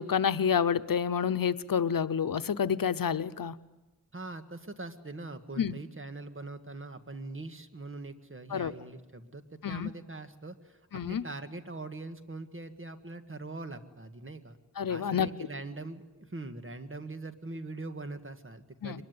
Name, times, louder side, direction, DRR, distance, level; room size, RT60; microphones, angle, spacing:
voice 1, 0.0-3.6 5.6-5.8 8.5-8.7 9.6-9.9 10.9-11.3 14.8-15.3 18.8-19.0, left 7 dB, 90° left, 13 dB, 0.8 m, -29 dB
voice 2, 4.1-14.6 14.9-19.0, right 2 dB, 40° right, 9 dB, 1.8 m, -42 dB
24.0 x 21.0 x 9.6 m, 1.0 s
wide cardioid pair, 75°, 33 cm